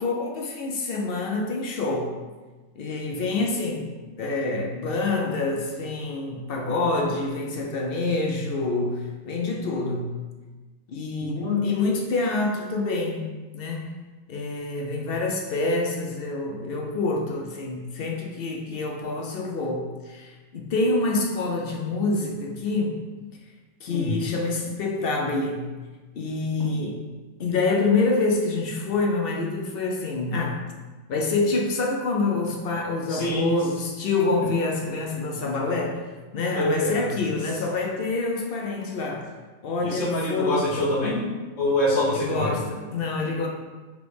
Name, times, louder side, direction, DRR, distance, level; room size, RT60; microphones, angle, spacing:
voice 1, 0.0-2.1 2.8-3.9 4.2-10.1 10.9-13.9 14.3-23.0 23.8-25.7 26.2-27.0 27.4-30.6 31.1-36.0 36.3-39.2 39.6-40.7 42.1-43.5, left 3 dB, 60° left, 1 dB, 0.7 m, -27 dB
voice 2, 11.2-11.6 23.9-24.1 33.1-33.6 36.5-37.1 39.8-41.3 41.6-42.6, left 1 dB, 80° left, -4 dB, 1.3 m, -25 dB
3.8 x 3.2 x 3.3 m, 1.3 s
omnidirectional pair, 1.3 m